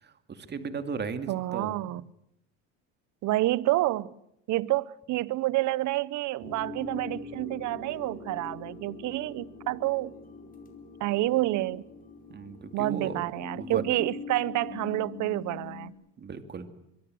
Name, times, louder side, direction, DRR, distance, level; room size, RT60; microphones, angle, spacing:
voice 1, 0.0-1.8 12.3-13.8 16.2-16.7, right 5 dB, 25° right, 2.4 m, -36 dB
voice 2, 1.3-2.0 3.2-4.1 4.5-10.1 11.0-11.8 12.7-15.9, right 17 dB, 50° right, 0.9 m, -28 dB
sound 1, 6.4-15.9, left 5 dB, 20° left, 4.5 m, -43 dB
24.5 x 22.5 x 7.8 m
supercardioid pair, 115°, 38 cm